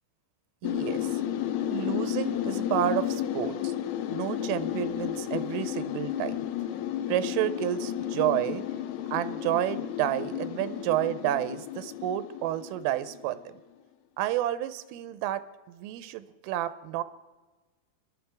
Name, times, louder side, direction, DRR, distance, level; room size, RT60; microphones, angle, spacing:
sound 1, 0.6-13.4, left 11 dB, 85° left, 3.5 m, -32 dB
voice 1, 0.6-1.2 1.7-3.7 4.1-6.5 7.1-8.6 9.1-13.4 14.2-17.0, right 13 dB, 85° right, 13 dB, 3.2 m, -30 dB
21.0 x 12.0 x 3.4 m, 1.3 s
omnidirectional pair, 5.7 m